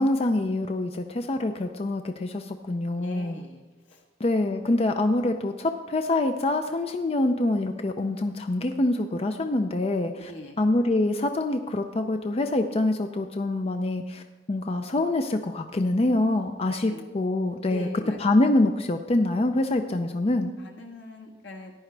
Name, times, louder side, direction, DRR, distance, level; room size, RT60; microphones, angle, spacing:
voice 1, 0.0-3.4 4.2-10.3 10.6-14.2 14.5-17.9 18.2-20.5, left 2 dB, 35° left, 6 dB, 0.5 m, -25 dB
voice 2, 3.0-3.6 3.9-4.0 10.2-10.6 16.7-17.1 17.7-18.2 20.6-21.7, equal, 85° left, 0 dB, 1.8 m, -42 dB
14.5 x 10.0 x 3.3 m, 1.1 s
head